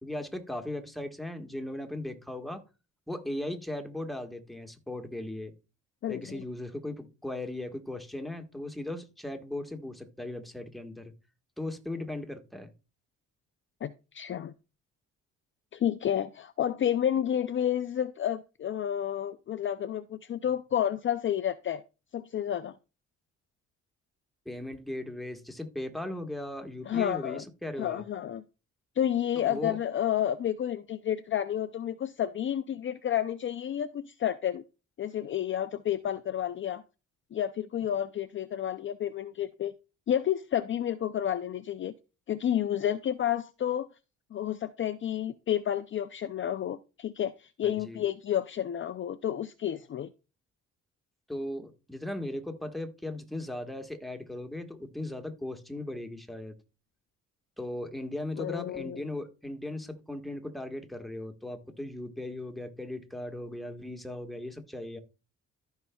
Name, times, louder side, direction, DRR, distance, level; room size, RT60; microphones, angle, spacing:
voice 1, 0.0-2.6 3.1-5.5 6.1-11.1 11.6-12.7 24.4-28.0 29.4-29.8 47.6-48.0 51.3-56.5 57.6-65.0, left 1 dB, ahead, 1.5 m, -38 dB
voice 2, 6.0-6.4 13.8-14.5 15.7-21.8 22.1-22.7 26.9-27.4 27.8-28.4 29.0-34.6 35.0-36.8 37.3-39.7 40.1-41.9 42.3-43.9 44.3-50.1 58.4-59.0, left 10 dB, 40° left, 0.5 m, -30 dB
14.0 x 5.5 x 2.3 m
cardioid pair, 90°, 30 cm